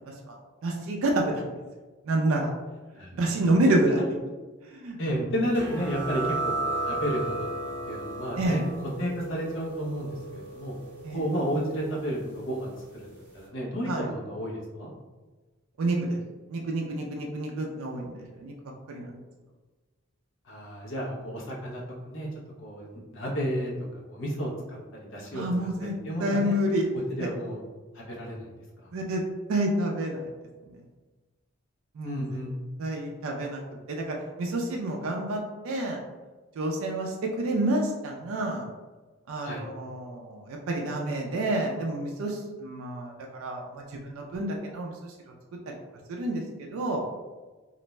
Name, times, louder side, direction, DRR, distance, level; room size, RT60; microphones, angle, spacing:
voice 1, 0.6-1.6 2.0-2.5 3.1-4.0 4.6-5.3 8.4-8.6 11.0-11.3 13.8-14.1 15.8-16.2 16.5-18.5 18.9-19.2 25.3-25.9 26.2-26.9 27.2-27.3 28.9-29.2 29.5-30.3 30.6-30.8 31.9-32.3 32.8-33.6 33.9-36.0 36.5-38.7 39.3-45.3 45.7-45.8 46.1-47.0, right 1 dB, 70° right, 0 dB, 0.4 m, -29 dB
voice 2, 5.0-8.6 9.0-10.7 11.1-13.1 13.3-14.9 20.4-21.8 22.1-22.3 22.6-25.4 25.8-26.6 26.9-27.6 27.9-28.5 28.8-28.9 32.0-32.6 39.4-39.6, equal, 60° left, -3 dB, 0.7 m, -32 dB
sound 1, 5.5-12.8, right 2 dB, 10° right, 0.7 m, -35 dB
2.5 x 2.1 x 3.0 m, 1.3 s
head